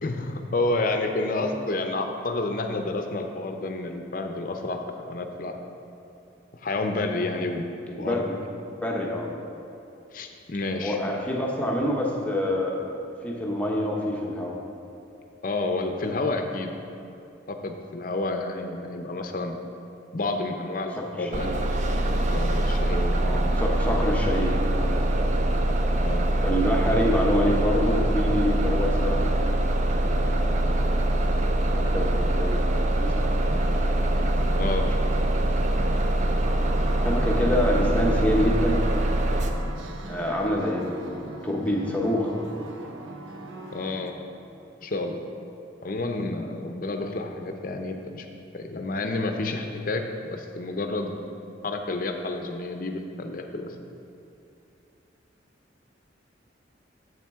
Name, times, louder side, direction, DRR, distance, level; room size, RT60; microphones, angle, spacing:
voice 1, 0.0-4.8 5.1-5.5 6.6-8.2 10.1-11.0 15.4-16.7 17.5-19.6 20.1-21.5 22.3-23.4 26.0-26.3 34.6-34.9 43.7-44.1 44.8-45.2 45.8-48.3 48.5-50.1 50.3-51.1 51.6-53.7, left 2 dB, 45° left, 5 dB, 0.6 m, -30 dB
voice 2, 8.0-8.4 8.7-9.3 10.8-14.6 21.0-21.6 23.2-25.3 26.3-29.3 30.0-30.5 31.7-33.6 37.0-38.8 40.1-42.4, left 1 dB, 10° left, -2 dB, 0.8 m, -27 dB
Bus, 21.3-39.5, right 1 dB, 40° right, 0.4 m, -23 dB
sound 1, 33.4-44.1, right 2 dB, 80° right, 0.6 m, -40 dB
8.0 x 7.3 x 3.5 m, 2.7 s
head